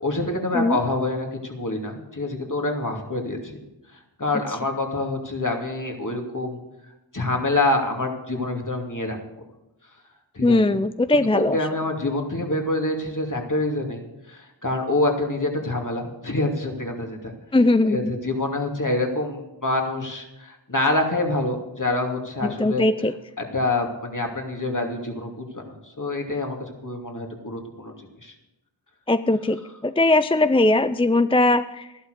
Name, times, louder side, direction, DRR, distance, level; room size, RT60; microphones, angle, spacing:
voice 1, 0.0-3.6 4.2-6.6 7.1-9.2 10.3-10.6 11.3-17.3 17.9-22.8 23.4-26.6 26.8-28.3, left 2 dB, 40° left, 2 dB, 2.7 m, -26 dB
voice 2, 10.4-11.6 17.5-18.1 22.4-23.1 29.1-31.9, left 2 dB, 10° left, 12 dB, 0.4 m, -20 dB
12.5 x 11.5 x 6.5 m, 0.95 s
wide cardioid pair, 45°, 46 cm